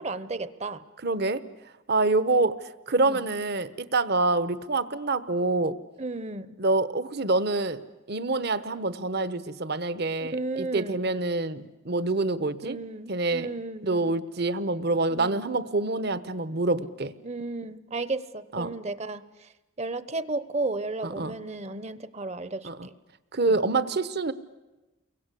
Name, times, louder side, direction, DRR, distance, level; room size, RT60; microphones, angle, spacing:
voice 1, 0.0-0.8 3.0-3.3 6.0-6.6 10.2-11.0 12.6-14.1 15.1-15.5 17.2-19.5 19.8-22.9 23.5-23.6, right 3 dB, 30° right, 16 dB, 0.9 m, -34 dB
voice 2, 1.0-1.5 1.9-2.6 2.9-5.8 6.6-12.8 13.1-13.5 13.8-17.1 18.5-18.7 21.0-21.4 22.6-22.9 23.3-24.3, right 2 dB, 50° right, 15 dB, 1.1 m, -26 dB
29.5 x 23.0 x 8.4 m, 1.1 s
head